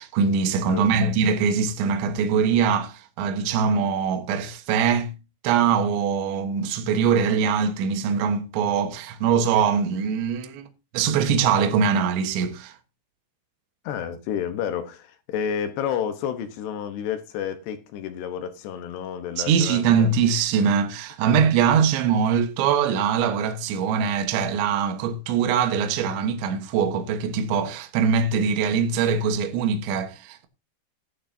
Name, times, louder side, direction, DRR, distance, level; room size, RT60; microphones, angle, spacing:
voice 1, 0.0-5.1 5.4-10.7 10.9-12.8 19.4-30.5, right 6 dB, 70° right, 3.4 m, -22 dB
voice 2, 0.7-1.1 13.8-20.1, left 8 dB, 70° left, 2.8 m, -30 dB
15.5 x 11.5 x 2.7 m
omnidirectional pair, 5.7 m